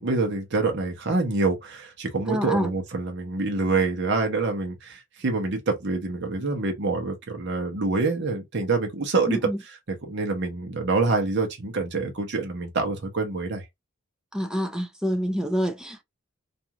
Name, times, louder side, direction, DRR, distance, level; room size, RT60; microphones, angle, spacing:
voice 1, 0.0-9.5 9.9-13.6, right 3 dB, 55° right, 0.8 m, -26 dB
voice 2, 2.3-2.7 9.3-9.6 14.3-16.0, equal, 5° right, 0.4 m, -27 dB
2.6 x 2.4 x 2.8 m
head